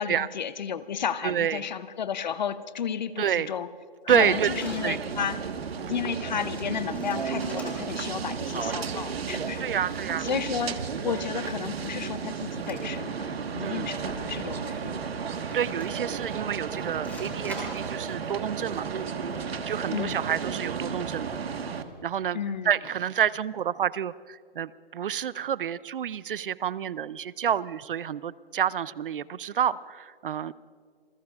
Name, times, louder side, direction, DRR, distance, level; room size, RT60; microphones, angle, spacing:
voice 1, 0.0-3.7 4.0-5.4 5.9-9.7 10.2-15.1 19.9-20.2 22.3-22.7, left 7 dB, 50° left, 14 dB, 0.7 m, -32 dB
voice 2, 1.2-1.6 3.2-3.5 4.1-4.5 4.8-5.0 5.8-5.9 9.6-10.3 13.6-13.9 15.5-18.9 19.7-21.4 22.0-22.4 22.6-30.5, right 9 dB, 60° right, 20 dB, 0.5 m, -28 dB
sound 1, 4.1-21.8, right 6 dB, 85° right, 1.4 m, -33 dB
sound 2, 4.5-4.8 5.3-5.5 5.7-5.8 6.0-6.3 6.6-8.1 8.4-8.8 10.1-11.2 11.6-11.7 12.6-13.0 13.2-13.3 13.8-14.1 14.6-14.7 15.5-16.2 16.9-17.9, left 1 dB, 5° left, 2.9 m, -44 dB
28.0 x 21.0 x 2.4 m, 2.1 s
hypercardioid pair, 170°, 30 cm